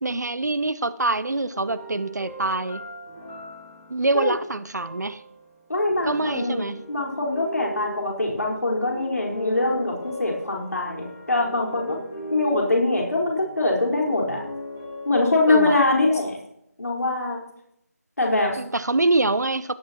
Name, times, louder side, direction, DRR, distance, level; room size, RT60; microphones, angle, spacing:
voice 1, 0.0-2.8 3.9-5.2 6.0-6.8 15.5-15.8 18.6-19.7, right 2 dB, 85° right, 15 dB, 0.8 m, -25 dB
sound 1, 1.5-16.3, right 1 dB, 10° left, 1.2 m, -39 dB
voice 2, 5.7-12.0 12.3-14.4 15.0-16.4 16.8-17.4 18.2-18.6, left 2 dB, 65° left, -2 dB, 4.6 m, -23 dB
17.5 x 10.5 x 3.0 m, 0.77 s
figure-of-eight pair, 180°, 9 cm